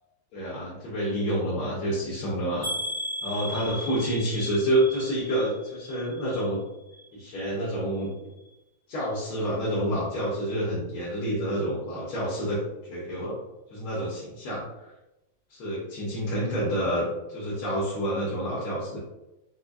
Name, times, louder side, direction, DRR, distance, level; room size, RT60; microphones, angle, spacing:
voice 1, 0.3-2.7 3.2-6.6 7.1-8.3 8.9-12.6 12.9-13.4 13.7-14.9 15.5-19.0, right 1 dB, 75° left, -7 dB, 1.9 m, -28 dB
sound 1, 2.6-6.6 6.9-7.5 8.0-8.1 8.5-8.6, left 1 dB, 45° left, 1.5 m, -36 dB
4.9 x 2.2 x 2.5 m, 0.96 s
omnidirectional pair, 2.4 m